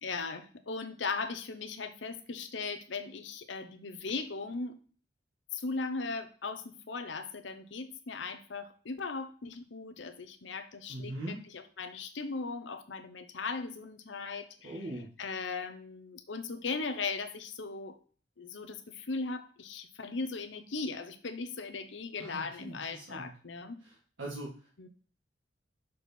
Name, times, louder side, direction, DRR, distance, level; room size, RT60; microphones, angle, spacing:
voice 1, 0.0-4.8 5.5-14.8 15.2-18.0 18.4-23.8 24.8-24.9, left 4 dB, 70° left, 9 dB, 0.8 m, -38 dB
voice 2, 10.9-11.4 14.6-15.1 22.2-23.3 23.8-24.9, right 1 dB, 80° right, -4 dB, 1.6 m, -42 dB
6.3 x 4.3 x 4.3 m, 0.42 s
head